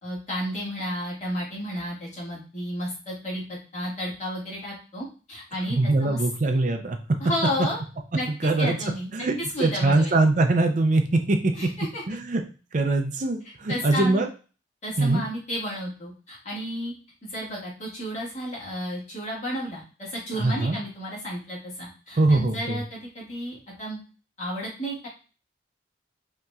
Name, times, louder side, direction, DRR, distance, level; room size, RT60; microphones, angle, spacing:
voice 1, 0.0-6.2 7.2-7.8 8.1-9.1 9.5-10.2 11.5-12.0 13.7-14.2 14.8-16.9 17.3-24.0 24.4-25.1, equal, 40° left, -5 dB, 1.9 m, -32 dB
voice 2, 5.7-7.0 8.4-8.8 9.1-11.7 12.1-12.4 12.7-14.3 15.0-15.2 20.4-20.8 22.2-22.8, right 2 dB, 45° right, 5 dB, 0.5 m, -22 dB
5.4 x 2.9 x 2.4 m, 0.36 s
head